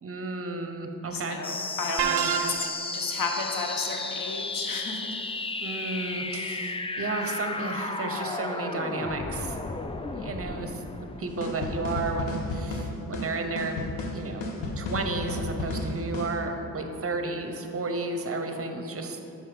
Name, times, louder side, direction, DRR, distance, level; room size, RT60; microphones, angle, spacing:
voice 1, 0.0-1.4 2.1-2.5 5.6-9.6 10.0-10.8 11.2-13.9 14.1-14.5 14.8-19.2, right 3 dB, 35° right, 5 dB, 0.8 m, -33 dB
voice 2, 1.1-5.1, left 4 dB, 50° left, 2 dB, 1.0 m, -33 dB
sound 1, 1.4-12.4, left 3 dB, 15° left, 0.3 m, -34 dB
sound 2, 2.0-3.0, right 9 dB, 65° right, 0.5 m, -27 dB
sound 3, 11.4-16.4, left 2 dB, 80° left, 1.0 m, -33 dB
5.6 x 5.4 x 5.0 m, 2.8 s
cardioid pair, 65°, 42 cm